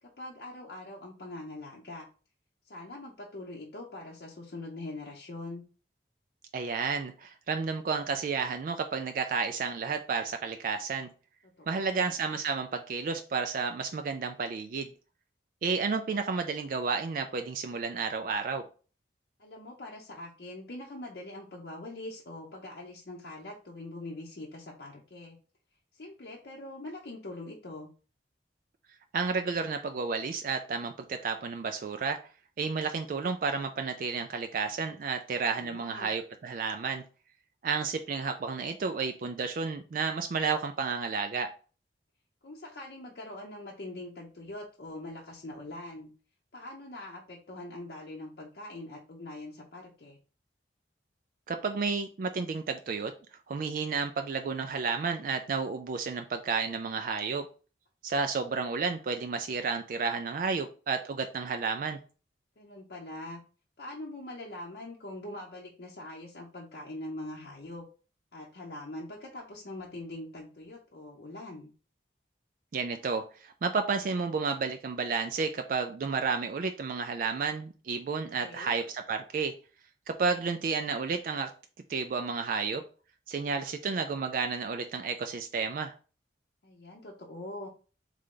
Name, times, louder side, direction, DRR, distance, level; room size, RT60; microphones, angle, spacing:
voice 1, 0.0-2.1 2.6-5.6 11.4-12.1 19.4-25.4 25.9-27.9 35.6-36.1 42.4-46.1 46.5-50.2 62.6-63.4 63.8-67.8 68.3-71.7 78.4-78.8 86.6-87.7, left 2 dB, 60° left, -3 dB, 0.7 m, -43 dB
voice 2, 6.5-11.1 11.7-14.9 15.6-18.6 29.1-32.2 32.6-37.0 37.6-41.5 51.5-53.1 53.5-57.5 58.0-62.0 72.7-79.5 80.1-81.5 81.9-82.8 83.3-85.9, right 5 dB, 50° right, 6 dB, 0.3 m, -31 dB
3.7 x 3.3 x 3.7 m, 0.37 s
head